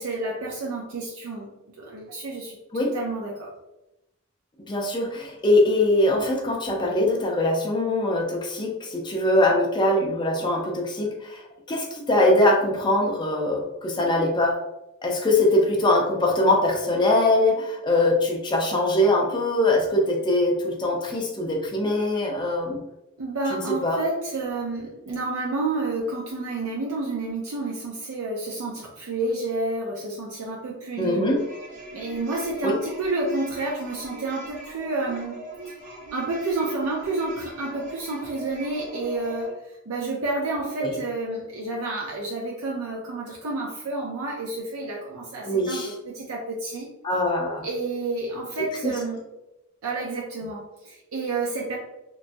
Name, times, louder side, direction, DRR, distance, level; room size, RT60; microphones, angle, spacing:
voice 1, 0.0-1.5 1.8-3.5 23.2-31.2 31.9-35.7 36.1-46.9 47.6-49.2 49.8-51.8, right 2 dB, 80° right, -2 dB, 0.5 m, -30 dB
voice 2, 4.7-11.4 11.7-14.6 15.0-22.8 23.5-24.0 31.0-31.4 32.6-32.8 40.8-40.9 45.5-45.9 47.0-47.6 48.8-48.9, left 1 dB, 20° left, 0 dB, 0.5 m, -22 dB
sound 1, 31.4-39.5, right 1 dB, 35° right, 1.0 m, -41 dB
3.0 x 2.3 x 2.5 m, 0.92 s
head